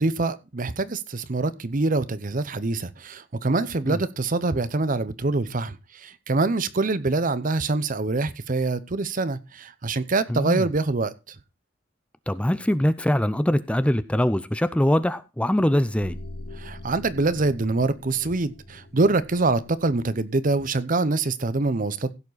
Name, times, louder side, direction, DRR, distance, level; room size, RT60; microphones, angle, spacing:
voice 1, 0.0-5.8 6.0-11.1 16.6-22.1, right 3 dB, 45° right, 0.8 m, -25 dB
voice 2, 10.3-10.7 12.3-16.2, left 1 dB, 5° left, 0.5 m, -23 dB
sound 1, 16.0-20.3, left 1 dB, 55° left, 1.1 m, -42 dB
16.0 x 7.2 x 4.0 m
head